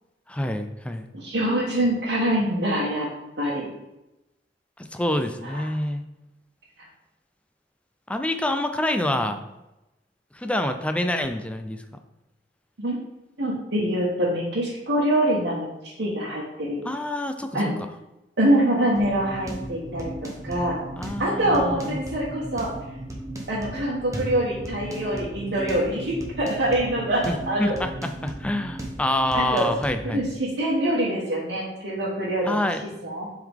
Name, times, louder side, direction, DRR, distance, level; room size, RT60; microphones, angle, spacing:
voice 1, 0.3-1.1 4.8-6.0 8.1-9.4 10.3-11.8 16.8-17.6 21.0-22.0 27.2-30.2 32.5-32.8, left 1 dB, 5° left, 7 dB, 0.4 m, -27 dB
voice 2, 1.1-3.1 3.4-3.7 5.4-5.7 12.8-13.0 13.4-16.8 17.5-17.7 18.4-20.8 21.2-22.7 23.5-27.7 29.3-29.7 30.0-32.7 33.0-33.3, right 1 dB, 85° right, -7 dB, 1.3 m, -25 dB
sound 1, 19.0-30.3, right 1 dB, 20° right, 0.9 m, -36 dB
7.4 x 3.9 x 3.5 m, 0.96 s
head